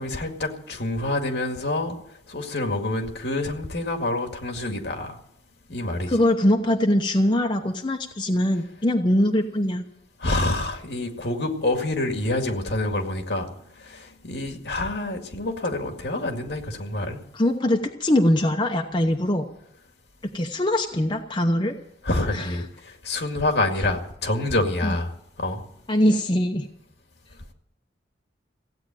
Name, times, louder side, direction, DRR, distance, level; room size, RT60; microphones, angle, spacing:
voice 1, 0.0-2.0 2.3-5.2 5.7-6.1 10.2-13.5 13.8-17.2 22.0-25.1 25.4-25.6, left 2 dB, 65° left, 4 dB, 2.1 m, -27 dB
voice 2, 6.1-9.8 17.3-19.5 20.3-21.7 22.3-22.5 24.8-25.0 25.9-26.7, left 1 dB, 25° left, 3 dB, 0.9 m, -22 dB
16.0 x 8.7 x 8.9 m, 0.74 s
head